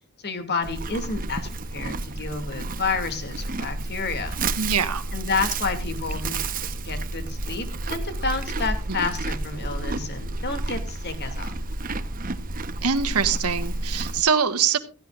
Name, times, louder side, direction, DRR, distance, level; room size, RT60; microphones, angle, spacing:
voice 1, 0.2-4.4 5.1-6.4 6.8-11.5, left 4 dB, 50° left, 2.4 m, -30 dB
Livestock farm animals working animals, 0.6-14.2, right 2 dB, 40° right, 1.0 m, -30 dB
voice 2, 4.6-5.0 8.9-9.0 12.8-14.8, right 6 dB, 85° right, 1.5 m, -23 dB
17.0 x 15.0 x 2.5 m
head